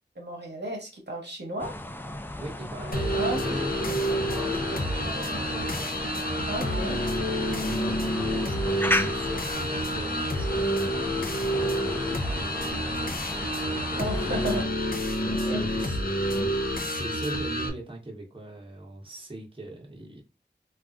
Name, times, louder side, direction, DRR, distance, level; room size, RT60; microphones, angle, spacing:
voice 1, 0.2-1.8 3.1-3.4 6.5-7.0 14.1-14.7 14.9-15.6, right 1 dB, 65° right, 0.9 m, -34 dB
sound 1, 1.6-14.7, left 1 dB, 10° left, 0.3 m, -36 dB
voice 2, 2.4-6.0 7.4-11.1 11.4-14.4 15.3-20.2, right 2 dB, 30° right, 0.9 m, -41 dB
sound 2, 2.8-9.6, equal, 85° left, 1.1 m, -43 dB
sound 3, 2.9-17.7, equal, 50° left, 0.6 m, -28 dB
3.4 x 2.4 x 2.5 m
wide cardioid pair, 60°, 19 cm